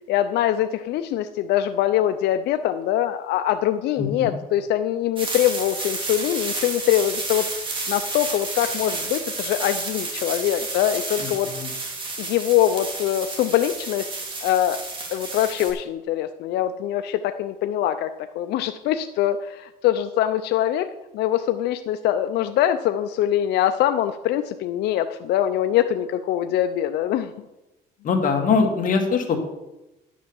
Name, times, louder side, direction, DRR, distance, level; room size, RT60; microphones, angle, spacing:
voice 1, 0.1-7.5 7.9-11.5 12.2-14.1 14.4-14.8 15.1-27.5, left 12 dB, 75° left, 9 dB, 0.6 m, -23 dB
voice 2, 4.0-4.3 11.2-11.7 28.0-29.4, left 5 dB, 55° left, 3 dB, 2.0 m, -22 dB
sound 1, 5.2-15.7, right 3 dB, 30° right, 3.2 m, -31 dB
10.0 x 6.2 x 7.1 m, 0.98 s
cardioid pair, 110°, 17 cm